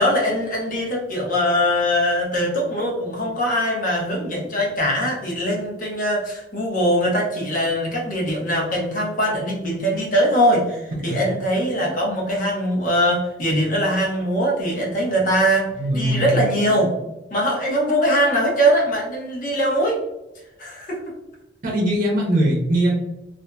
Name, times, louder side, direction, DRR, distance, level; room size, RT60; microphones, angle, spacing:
voice 1, 0.0-15.7 15.9-16.9 17.3-20.0 20.6-21.0, equal, 50° left, -2 dB, 0.9 m, -21 dB
voice 2, 15.8-16.3 21.6-22.9, right 1 dB, 50° right, -2 dB, 0.7 m, -21 dB
2.7 x 2.5 x 2.2 m, 0.94 s
head